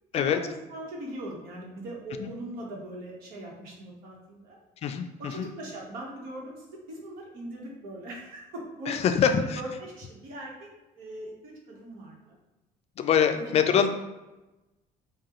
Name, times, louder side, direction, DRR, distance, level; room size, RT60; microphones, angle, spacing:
voice 1, 0.1-4.6 5.2-8.9 9.3-10.7 11.0-12.3 13.3-13.9, right 1 dB, 75° right, -2 dB, 1.2 m, -40 dB
voice 2, 8.9-9.4 13.0-13.9, left 8 dB, 45° left, 7 dB, 0.3 m, -23 dB
5.0 x 2.3 x 3.0 m, 1.0 s
cardioid pair, 130°, 15 cm